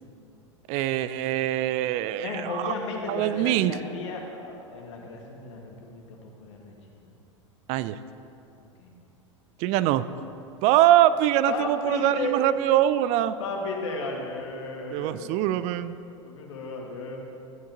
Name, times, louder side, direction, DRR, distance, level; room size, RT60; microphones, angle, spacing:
voice 1, 0.7-2.7 3.1-3.8 7.7-8.0 9.6-10.0 10.6-13.4 14.9-16.0, right 13 dB, 45° right, 14 dB, 0.4 m, -23 dB
voice 2, 2.2-6.7 8.8-8.9 11.5-12.4 13.4-15.3 16.2-17.2, left 2 dB, 65° left, 0 dB, 1.8 m, -34 dB
14.0 x 8.7 x 2.8 m, 2.6 s
hypercardioid pair, 90°, 16 cm